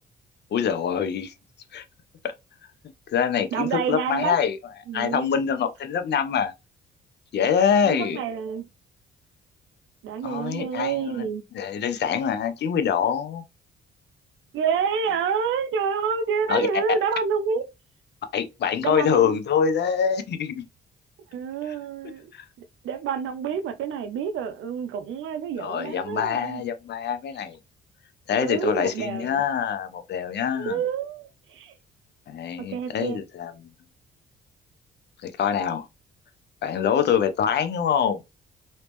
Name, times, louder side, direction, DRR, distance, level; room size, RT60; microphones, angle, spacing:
voice 1, 0.5-1.3 1.7-1.8 2.2-2.3 3.1-4.6 4.9-6.5 7.3-8.2 10.2-11.3 11.5-13.4 16.5-16.7 18.3-20.6 21.7-21.8 22.3-22.4 25.6-27.6 28.3-30.8 32.3-33.7 35.2-35.9 36.6-38.2, left 7 dB, 60° left, 0.7 m, -25 dB
voice 2, 3.5-4.3 4.9-5.4 7.8-8.6 10.0-11.4 14.5-17.6 18.8-19.4 21.3-22.3 22.8-26.6 28.3-29.4 30.5-31.7 32.6-33.2, right 6 dB, 80° right, 0.7 m, -28 dB
3.1 x 2.8 x 3.4 m
cardioid pair, 90°, 20 cm